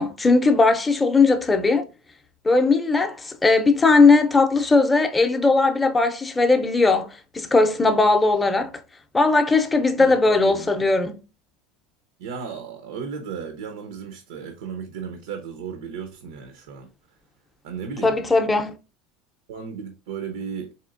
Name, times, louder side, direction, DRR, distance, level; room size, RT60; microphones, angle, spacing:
voice 1, 0.0-1.8 2.4-8.7 9.1-11.2 18.0-18.7, left 3 dB, 10° left, 0.5 m, -18 dB
voice 2, 10.0-10.7 12.2-16.9 17.6-18.2 19.5-20.7, right 6 dB, 85° right, 0.7 m, -35 dB
4.2 x 3.1 x 2.5 m
supercardioid pair, 145°, 0 cm